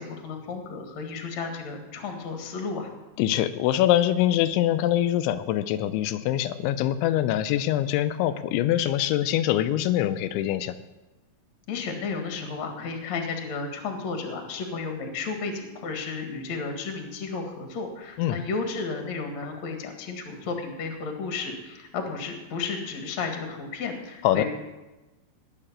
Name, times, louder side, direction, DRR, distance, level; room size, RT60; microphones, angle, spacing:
voice 1, 0.0-2.9 11.7-24.4, left 4 dB, 50° left, 4 dB, 2.3 m, -33 dB
voice 2, 3.2-10.8 18.2-18.4 24.2-24.4, left 12 dB, 80° left, 12 dB, 2.9 m, -24 dB
20.0 x 6.9 x 8.8 m, 1.1 s
omnidirectional pair, 5.6 m